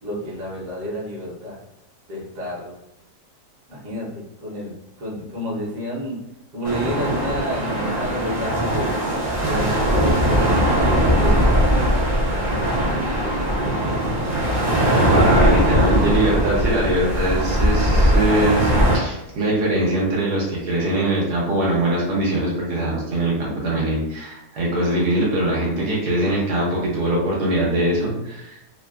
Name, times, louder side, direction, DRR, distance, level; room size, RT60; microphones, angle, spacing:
voice 1, 0.0-1.6 2.1-2.8 3.7-6.2 6.5-9.0 9.4-11.5 12.2-14.4, equal, 60° right, -5 dB, 1.2 m, -31 dB
sound 1, 6.6-19.0, equal, 35° right, 0.7 m, -20 dB
voice 2, 14.8-28.6, right 1 dB, 80° right, -4 dB, 1.3 m, -22 dB
3.1 x 2.1 x 2.3 m, 0.93 s
omnidirectional pair, 1.7 m